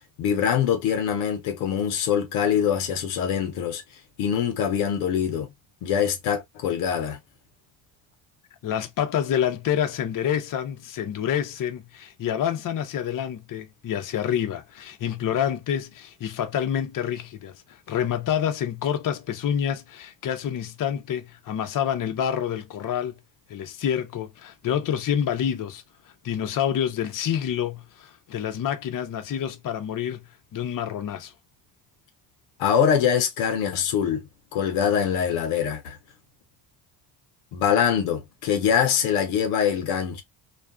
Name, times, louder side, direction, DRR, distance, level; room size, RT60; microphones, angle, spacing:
voice 1, 0.2-3.8 4.2-5.5 5.8-7.2 32.6-34.3 34.5-36.0 37.5-40.2, left 8 dB, 80° left, 0.8 m, -23 dB
voice 2, 8.6-23.2 23.5-25.8 26.2-30.2 30.5-31.3, left 9 dB, 40° left, 0.7 m, -27 dB
2.4 x 2.3 x 2.2 m
supercardioid pair, 60°, 49 cm